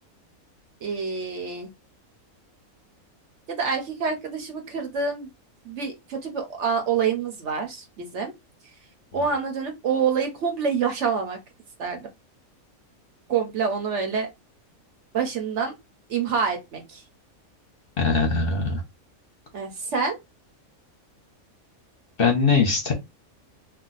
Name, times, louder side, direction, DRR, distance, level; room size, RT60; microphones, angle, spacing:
voice 1, 0.8-1.7 3.5-5.3 5.6-8.3 9.1-11.4 11.8-12.1 13.3-14.3 15.1-15.7 16.1-17.0 19.5-20.2, right 6 dB, 60° right, 0.9 m, -27 dB
voice 2, 18.0-18.8 22.2-22.9, left 4 dB, 50° left, 0.8 m, -21 dB
2.5 x 2.2 x 3.8 m
omnidirectional pair, 1.5 m